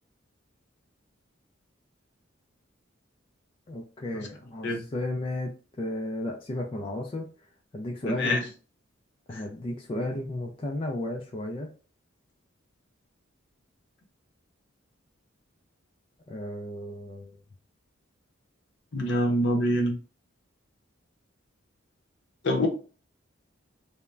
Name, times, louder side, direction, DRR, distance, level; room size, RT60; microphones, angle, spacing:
voice 1, 3.7-7.3 7.7-8.5 9.3-11.7 16.3-17.4, left 1 dB, 25° left, 1 dB, 0.3 m, -34 dB
voice 2, 18.9-19.9 22.4-22.7, left 1 dB, 60° left, 2 dB, 0.7 m, -25 dB
3.2 x 2.0 x 2.3 m, 0.37 s
head